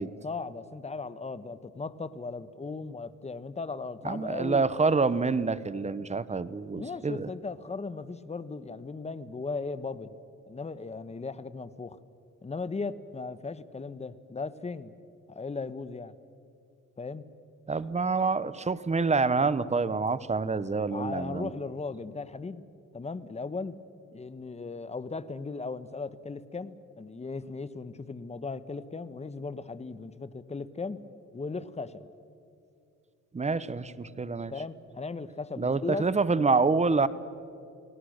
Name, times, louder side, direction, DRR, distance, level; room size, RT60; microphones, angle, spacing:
voice 1, 0.2-4.6 6.7-10.1 10.5-12.0 12.4-14.9 15.3-16.2 17.0-17.3 20.9-22.6 22.9-23.8 24.1-31.0 31.3-32.1 34.5-36.1, left 4 dB, 20° left, 14 dB, 1.1 m, -37 dB
voice 2, 4.0-7.3 17.7-21.5 33.3-34.5 35.6-37.1, right 4 dB, 25° right, 16 dB, 0.9 m, -27 dB
30.0 x 18.5 x 6.5 m, 2.6 s
cardioid pair, 90°, 30 cm